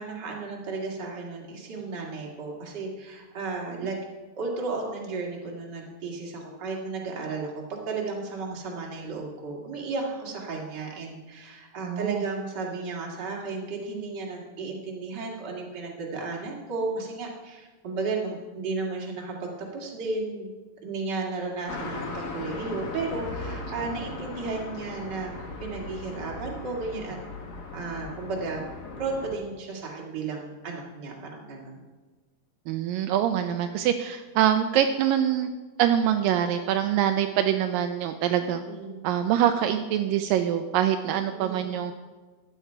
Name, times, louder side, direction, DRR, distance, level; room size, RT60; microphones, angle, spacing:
voice 1, 0.0-4.0 4.3-20.5 20.8-27.2 27.7-28.6 29.0-31.8 38.4-39.0 41.1-41.8, right 3 dB, 35° right, -2 dB, 2.3 m, -34 dB
voice 2, 11.8-12.2 32.7-35.5 35.8-38.6 39.0-41.9, right 10 dB, 80° right, 7 dB, 2.2 m, -24 dB
sound 1, 21.7-29.4, left 3 dB, 65° left, 0.9 m, -38 dB
15.0 x 10.0 x 4.6 m, 1.3 s
omnidirectional pair, 4.2 m